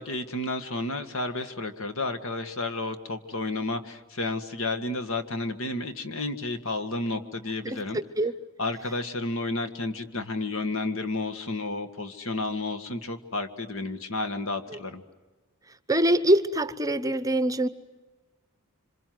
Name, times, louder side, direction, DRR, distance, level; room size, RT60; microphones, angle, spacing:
voice 1, 0.0-8.0 8.6-15.0, left 2 dB, 65° left, 9 dB, 1.8 m, -31 dB
voice 2, 7.6-8.3 14.7-14.8 15.7-17.7, right 1 dB, 15° right, 13 dB, 0.8 m, -24 dB
27.0 x 26.0 x 7.8 m, 1.2 s
head